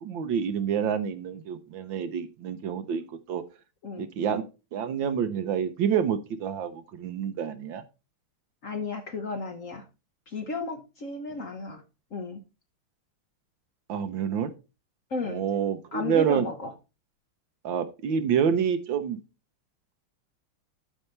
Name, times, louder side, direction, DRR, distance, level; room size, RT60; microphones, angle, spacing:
voice 1, 0.0-3.0 3.3-3.4 4.0-4.4 4.7-7.8 13.9-14.5 15.3-16.5 17.6-19.2, right 7 dB, 70° right, 11 dB, 1.5 m, -28 dB
voice 2, 8.6-9.9 10.3-11.8 12.1-12.4 15.1-15.4 15.9-16.7, left 3 dB, 50° left, 6 dB, 1.1 m, -34 dB
12.0 x 5.6 x 3.2 m, 0.29 s
omnidirectional pair, 2.3 m